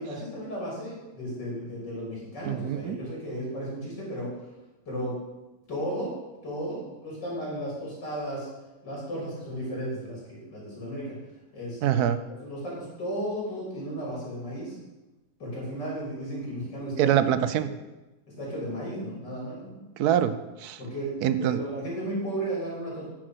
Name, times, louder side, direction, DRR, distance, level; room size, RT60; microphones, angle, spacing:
voice 1, 0.0-4.3 4.9-5.1 5.7-6.1 6.4-8.5 8.8-11.2 11.5-14.8 15.4-17.2 17.6-17.8 18.3-19.8 20.8-23.1, right 1 dB, 90° left, -5 dB, 4.2 m, -34 dB
voice 2, 2.4-3.0 11.8-12.2 17.0-17.7 20.0-20.8 21.2-21.6, right 10 dB, 70° right, 13 dB, 1.1 m, -24 dB
9.9 x 6.6 x 6.1 m, 1.1 s
omnidirectional pair, 1.8 m